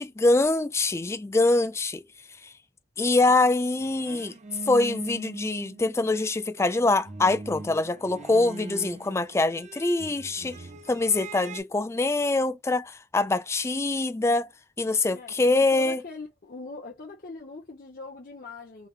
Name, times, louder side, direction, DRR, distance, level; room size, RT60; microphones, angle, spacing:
voice 1, 0.0-2.0 3.0-4.3 4.7-10.6 10.9-14.5 14.8-16.0, left 2 dB, 15° left, 0.4 m, -24 dB
sound 1, 3.8-6.3 6.6-11.6, right 3 dB, 40° right, 0.5 m, -41 dB
voice 2, 15.1-18.9, left 3 dB, 55° left, 0.8 m, -41 dB
3.3 x 2.0 x 3.1 m
head